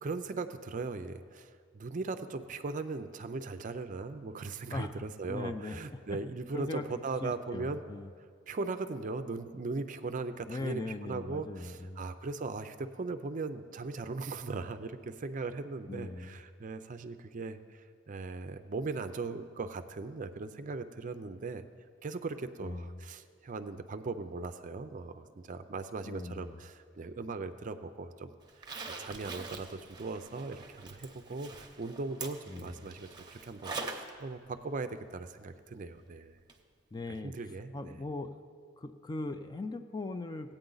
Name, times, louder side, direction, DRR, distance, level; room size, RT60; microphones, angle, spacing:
voice 1, 0.0-7.8 8.5-21.7 22.0-28.3 28.9-36.3 37.2-38.0, right 3 dB, 40° right, 10 dB, 0.5 m, -39 dB
voice 2, 5.3-5.8 6.5-6.8 7.2-8.1 10.5-12.1 15.9-16.4 22.6-23.0 26.0-26.6 32.5-32.9 36.9-37.3 37.7-38.3 38.8-40.6, left 2 dB, 20° left, 8 dB, 0.4 m, -39 dB
Zipper (clothing), 28.5-34.1 34.5-34.6 36.5-36.6 37.0-37.1, right 3 dB, 20° right, 0.8 m, -44 dB
16.5 x 8.8 x 3.9 m, 2.2 s
head